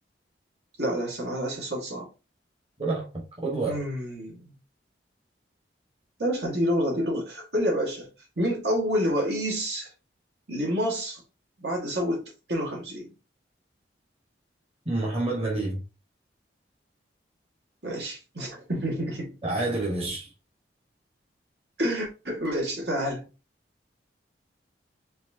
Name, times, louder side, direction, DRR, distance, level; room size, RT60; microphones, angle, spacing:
voice 1, 0.8-2.1 3.7-4.6 6.2-8.1 8.4-9.9 10.5-11.2 11.6-13.1 17.8-19.4 21.8-23.2, equal, 60° right, 1.9 m, -28 dB
voice 2, 2.8-3.8 14.8-15.8 19.4-20.3, right 2 dB, 30° right, 1.5 m, -28 dB
4.5 x 3.6 x 2.8 m
head